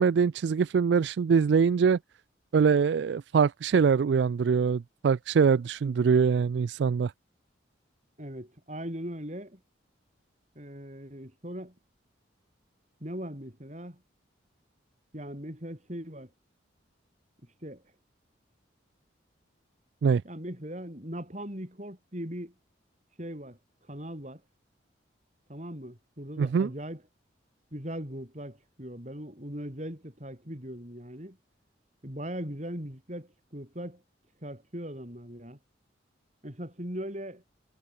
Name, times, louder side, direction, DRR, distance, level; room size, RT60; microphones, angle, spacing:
voice 1, 0.0-2.0 2.5-7.1 20.0-20.2 26.4-26.7, right 6 dB, 65° right, 0.3 m, -23 dB
voice 2, 8.2-9.6 10.5-11.7 13.0-14.0 15.1-16.3 17.6-17.8 20.2-22.5 23.2-23.6 23.9-24.4 25.5-27.0 27.7-31.4 32.0-34.0 34.4-35.6 36.4-37.4, equal, 35° right, 6.5 m, -39 dB
head